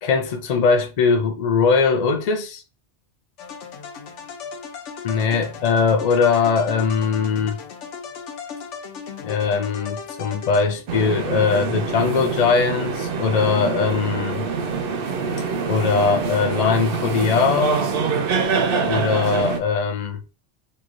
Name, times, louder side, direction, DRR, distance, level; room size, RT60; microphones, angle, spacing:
voice 1, 0.0-2.6 5.0-7.6 9.2-14.5 15.7-17.8 18.9-20.2, left 5 dB, 55° left, 0.4 m, -20 dB
sound 1, 3.4-11.1, left 6 dB, 80° left, 1.0 m, -36 dB
sound 2, 10.9-19.6, right 5 dB, 60° right, 0.7 m, -25 dB
3.0 x 2.4 x 2.5 m
omnidirectional pair, 1.2 m